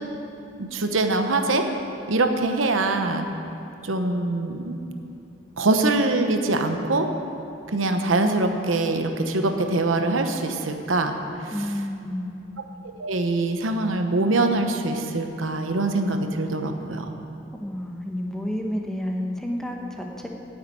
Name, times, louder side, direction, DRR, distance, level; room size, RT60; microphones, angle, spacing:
voice 1, 0.6-1.7 2.1-3.3 3.8-4.8 5.6-7.1 7.7-11.1 11.4-11.5 13.0-17.1, right 2 dB, 85° right, 5 dB, 1.0 m, -23 dB
voice 2, 11.5-12.3 17.6-20.3, left 1 dB, 5° left, 0 dB, 1.0 m, -30 dB
9.5 x 7.8 x 9.3 m, 2.9 s
head